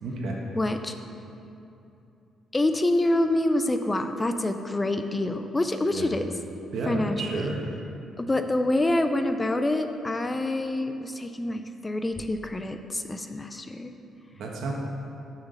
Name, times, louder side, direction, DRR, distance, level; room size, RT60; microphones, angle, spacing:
voice 1, 0.0-0.4 5.9-6.1 6.7-7.6 14.4-14.7, right 3 dB, 75° right, -1 dB, 1.3 m, -31 dB
voice 2, 0.5-0.9 2.5-6.3 6.9-7.5 8.2-13.9, left 1 dB, 20° left, 7 dB, 0.5 m, -26 dB
6.5 x 6.1 x 5.4 m, 2.7 s
cardioid pair, 90°, 0 cm